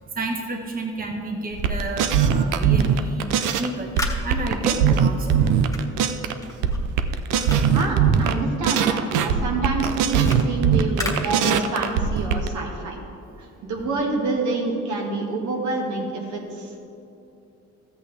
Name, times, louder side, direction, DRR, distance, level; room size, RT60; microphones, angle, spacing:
voice 1, 0.2-3.2 3.6-3.9 4.2-5.3, right 2 dB, 30° right, 2 dB, 1.2 m, -30 dB
sound 1, 1.5-3.7 4.0-6.3 6.6-8.3 8.6-12.5, right 7 dB, 90° right, 0.6 m, -20 dB
sound 2, 3.4-8.8 9.1-12.0, left 2 dB, 10° left, 1.5 m, -37 dB
voice 2, 7.7-13.0 13.4-16.8, right 3 dB, 75° right, 0 dB, 1.8 m, -27 dB
13.0 x 8.1 x 3.4 m, 2.8 s
cardioid pair, 90°, 30 cm